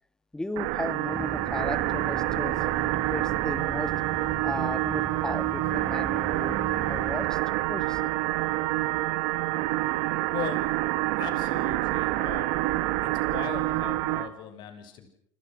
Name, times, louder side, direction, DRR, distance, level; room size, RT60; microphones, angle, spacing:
voice 1, 0.3-2.5 3.1-3.9 4.4-7.4 7.7-8.0, left 1 dB, 5° left, 13 dB, 1.6 m, -35 dB
sound 1, 0.6-14.3, right 17 dB, 75° right, 1.8 m, -27 dB
sound 2, 1.1-7.3, right 1 dB, 10° right, 4.6 m, -39 dB
voice 2, 10.3-10.6 11.2-12.6 13.0-15.1, left 9 dB, 55° left, 8 dB, 6.7 m, -39 dB
29.0 x 27.5 x 6.3 m, 0.66 s
supercardioid pair, 115°, 9 cm